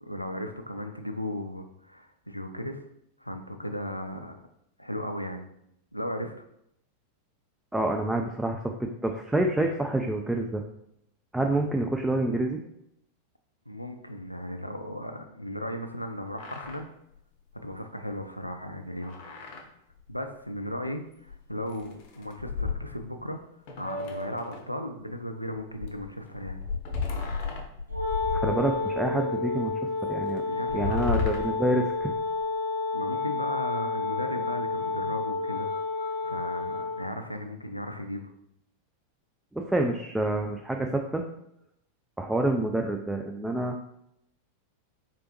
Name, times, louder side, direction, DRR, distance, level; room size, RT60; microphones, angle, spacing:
voice 1, 0.0-2.8 3.2-4.4 4.8-5.5 5.9-6.3 13.7-16.9 17.6-19.2 20.1-23.4 23.8-26.6 30.5-31.1 32.9-35.7 36.2-38.3, equal, 90° left, 6 dB, 0.4 m, -36 dB
voice 2, 7.7-10.6 11.3-12.6 28.3-29.7 30.0-30.4 30.7-32.1 39.5-41.2 42.2-43.7, right 1 dB, 5° right, 3 dB, 0.3 m, -27 dB
sound 1, 16.0-16.1 16.3-16.8 17.2-17.3 17.5-17.7 19.0-19.7 20.0-20.1 21.3-21.4 21.7-23.3 23.7-24.7 25.5-29.1 29.6-29.7 30.5-32.5, left 5 dB, 45° left, 0.6 m, -34 dB
Wind instrument woodwind instrument, 27.9-37.1, left 3 dB, 75° right, 0.8 m, -30 dB
3.8 x 3.3 x 3.0 m, 0.77 s
figure-of-eight pair, 90°, 0 cm